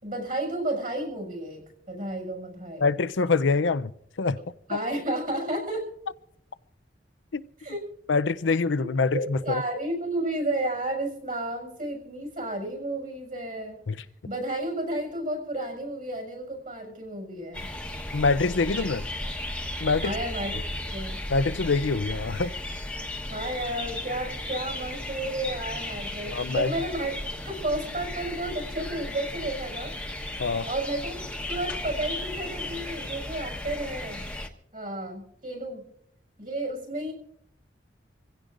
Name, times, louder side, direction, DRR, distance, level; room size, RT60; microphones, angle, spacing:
voice 1, 0.0-2.9 4.7-5.9 7.6-7.9 8.5-8.6 9.1-13.8 14.2-17.7 20.0-20.6 20.9-21.2 23.3-27.1 27.4-29.9 30.6-34.2 34.7-35.8 36.4-37.1, right 1 dB, 45° right, 6.6 m, -32 dB
voice 2, 2.8-3.9 4.2-4.4 4.7-4.8 7.3-7.4 8.1-9.6 13.9-14.0 18.1-19.0 19.8-20.1 21.3-22.5 26.3-26.7 30.4-30.7, left 4 dB, 85° left, 0.6 m, -25 dB
sound 1, 17.5-34.5, left 1 dB, 5° left, 1.2 m, -35 dB
26.0 x 16.0 x 2.6 m
head